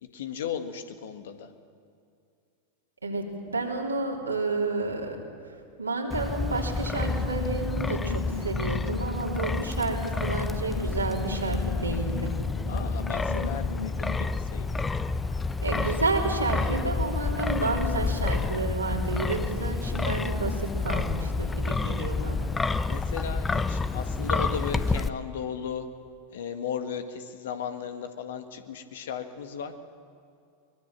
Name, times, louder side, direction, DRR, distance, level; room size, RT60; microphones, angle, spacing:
voice 1, 0.0-1.5 12.7-14.8 21.5-21.7 22.9-25.9 26.3-29.8, left 7 dB, 65° left, 8 dB, 1.7 m, -36 dB
voice 2, 3.0-5.2 5.8-12.3 15.6-22.5, right 3 dB, 90° right, -1 dB, 3.4 m, -30 dB
Wind, 6.1-25.1, left 3 dB, 15° left, 0.8 m, -29 dB
sound 1, 6.9-14.3, left 4 dB, 85° left, 1.3 m, -39 dB
23.0 x 21.5 x 7.5 m, 2.4 s
figure-of-eight pair, 90°, 0 cm